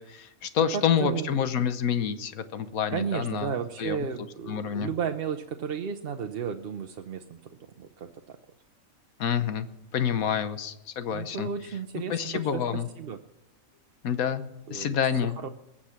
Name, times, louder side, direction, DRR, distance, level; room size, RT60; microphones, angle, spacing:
voice 1, 0.0-4.0 4.5-4.9 9.2-9.7 9.9-11.5 12.1-12.9 14.0-14.4 14.7-15.4, left 8 dB, 90° left, 11 dB, 1.4 m, -28 dB
voice 2, 0.7-1.3 2.9-7.4 7.8-8.4 11.1-13.2 14.7-15.0 15.4-15.5, right 7 dB, 50° right, 6 dB, 0.8 m, -33 dB
21.5 x 7.4 x 5.8 m, 0.94 s
omnidirectional pair, 1.4 m